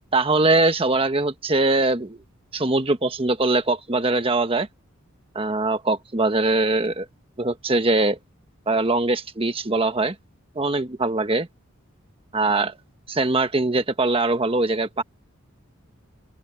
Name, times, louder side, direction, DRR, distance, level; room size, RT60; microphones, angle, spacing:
voice 1, 0.1-2.2 2.5-4.7 5.3-7.1 7.4-8.2 8.7-10.1 10.5-11.5 12.3-12.7 13.1-15.0, right 2 dB, 25° right, 1.3 m, -22 dB
open air
head